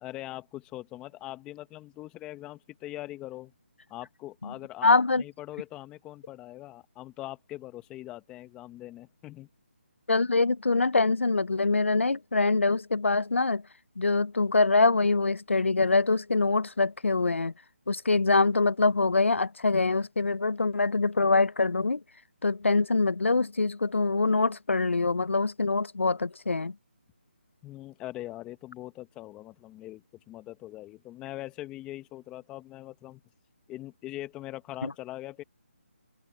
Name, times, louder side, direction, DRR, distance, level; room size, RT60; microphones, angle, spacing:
voice 1, 0.0-3.5 3.9-9.5 27.6-33.2 33.7-35.4, left 16 dB, 10° left, 1.5 m, -42 dB
voice 2, 4.8-5.2 10.1-13.6 14.0-17.5 17.9-22.0 22.4-26.8 34.8-34.9, left 3 dB, 80° left, 0.9 m, -24 dB
open air
figure-of-eight pair, 155°, 7 cm